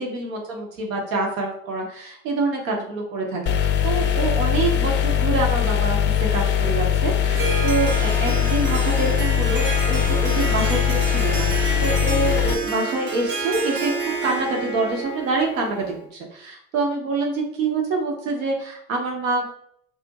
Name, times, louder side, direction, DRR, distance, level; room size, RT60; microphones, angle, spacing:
voice 1, 0.0-13.9 14.2-19.4, right 3 dB, 85° right, 0 dB, 0.9 m, -26 dB
sound 1, 3.5-12.5, left 9 dB, 30° left, 0.4 m, -21 dB
Harp, 7.3-16.1, right 3 dB, 30° right, 0.6 m, -29 dB
2.4 x 2.4 x 4.0 m, 0.69 s
hypercardioid pair, 80°, 39 cm